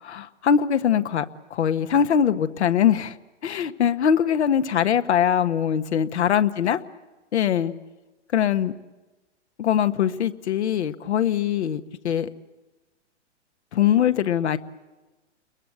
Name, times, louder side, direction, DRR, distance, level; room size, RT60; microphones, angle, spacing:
voice 1, 0.0-1.2 1.5-3.1 3.4-6.8 7.3-7.7 8.3-8.7 9.6-12.3 13.7-14.6, left 9 dB, 65° left, 10 dB, 1.5 m, -22 dB
29.5 x 22.0 x 7.9 m, 1.1 s
hypercardioid pair, 115°, 35 cm